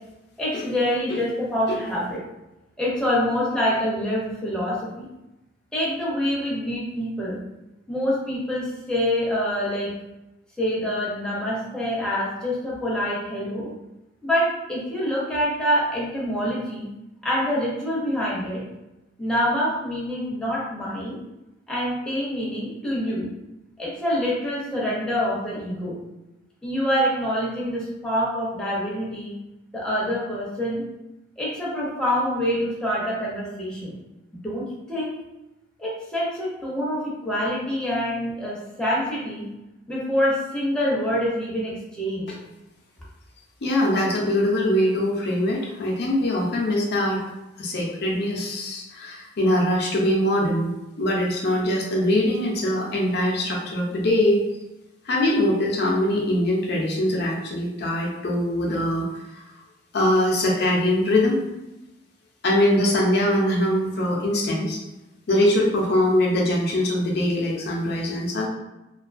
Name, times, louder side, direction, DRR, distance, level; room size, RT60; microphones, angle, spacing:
voice 1, 0.4-2.2 2.8-5.1 5.7-7.4 7.9-10.0 10.6-13.7 14.2-16.9 17.2-18.6 19.2-21.2 21.7-23.3 23.8-26.0 26.6-29.3 29.7-30.8 31.4-34.0 34.4-35.2 35.8-39.5 39.9-42.3, equal, 5° left, -6 dB, 0.6 m, -26 dB
voice 2, 43.6-47.2 47.6-50.7 51.0-54.4 55.1-59.0 59.9-61.4 62.4-64.8 65.3-68.5, left 1 dB, 60° left, -2 dB, 0.5 m, -22 dB
2.4 x 2.3 x 2.4 m, 0.97 s
head